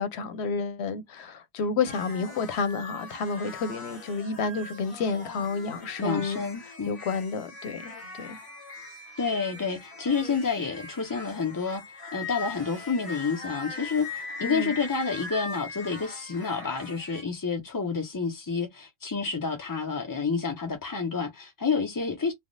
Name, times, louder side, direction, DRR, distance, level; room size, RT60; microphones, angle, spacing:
voice 1, 0.0-7.9 8.2-8.4 14.4-14.7, left 5 dB, 85° left, 0.9 m, -30 dB
sound 1, 1.8-17.2, left 4 dB, 55° left, 1.4 m, -41 dB
voice 2, 6.0-7.0 9.2-22.3, left 5 dB, 30° left, 0.4 m, -29 dB
3.3 x 2.1 x 2.5 m
omnidirectional pair, 1.1 m